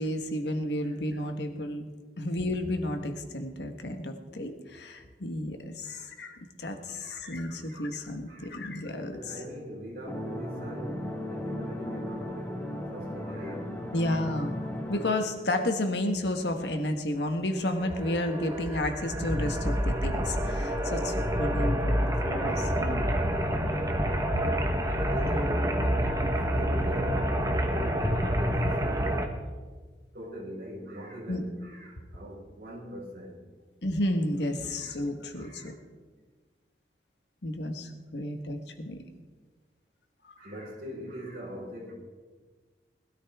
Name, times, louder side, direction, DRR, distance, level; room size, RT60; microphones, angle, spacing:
voice 1, 0.0-1.9 2.2-9.3 13.9-14.6 14.9-23.1 25.2-25.4 31.3-31.4 33.8-35.7 37.4-39.0 40.2-40.3, left 1 dB, 75° left, 5 dB, 1.4 m, -32 dB
voice 2, 5.8-6.1 6.8-7.9 8.3-8.7 9.1-12.6 12.9-14.2 25.1-26.0 26.5-29.2 30.1-33.4 34.6-35.0 35.3-35.7 40.4-41.9, equal, 55° right, -3 dB, 4.8 m, -42 dB
sound 1, 10.1-15.1, left 1 dB, 10° left, 1.5 m, -36 dB
sound 2, 17.7-29.3, equal, 20° right, 1.3 m, -28 dB
20.0 x 13.0 x 3.6 m, 1.4 s
head